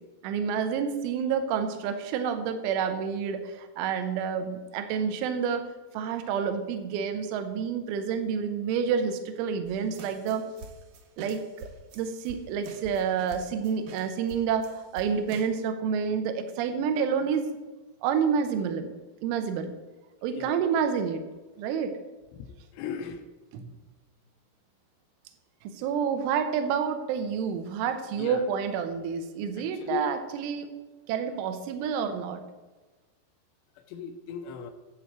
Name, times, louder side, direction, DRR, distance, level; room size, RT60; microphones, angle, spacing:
voice 1, 0.2-10.4 11.2-11.7 11.9-17.5 18.0-18.9 19.2-19.7 20.2-21.2 21.6-22.0 23.5-23.8 25.6-30.7 31.1-32.4, right 7 dB, 85° right, 8 dB, 3.3 m, -29 dB
sound 1, 9.7-15.5, right 3 dB, 70° right, 2.1 m, -47 dB
voice 2, 22.3-23.2 28.2-28.4 29.6-30.0 33.9-34.7, left 7 dB, 80° left, 7 dB, 2.7 m, -37 dB
13.5 x 7.8 x 4.7 m, 1.2 s
omnidirectional pair, 5.4 m